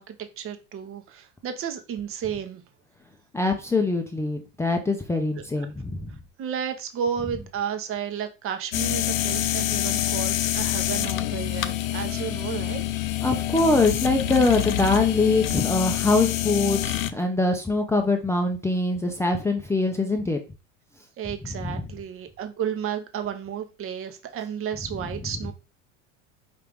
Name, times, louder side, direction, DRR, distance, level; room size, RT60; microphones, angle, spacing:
voice 1, 0.0-2.6 5.6-5.7 6.4-12.8 21.2-25.5, right 8 dB, 35° right, 0.9 m, -32 dB
voice 2, 3.3-6.1 13.2-20.4 21.6-21.8, left 3 dB, 5° left, 0.6 m, -23 dB
sound 1, 8.7-17.1, left 12 dB, 90° left, 0.5 m, -26 dB
5.1 x 2.8 x 3.5 m
hypercardioid pair, 95°, 39 cm